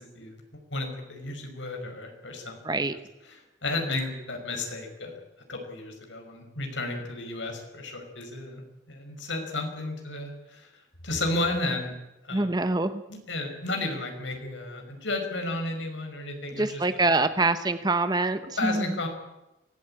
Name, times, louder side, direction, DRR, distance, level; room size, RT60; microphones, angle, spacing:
voice 1, 0.0-2.8 3.6-5.2 5.5-8.6 8.9-10.7 11.0-11.9 12.2-12.5 13.1-16.8 18.6-19.1, left 2 dB, 80° left, 4 dB, 5.3 m, -33 dB
voice 2, 2.6-3.0 12.3-13.0 16.6-19.0, right 2 dB, 20° right, 11 dB, 0.9 m, -25 dB
23.5 x 17.0 x 8.8 m, 0.96 s
head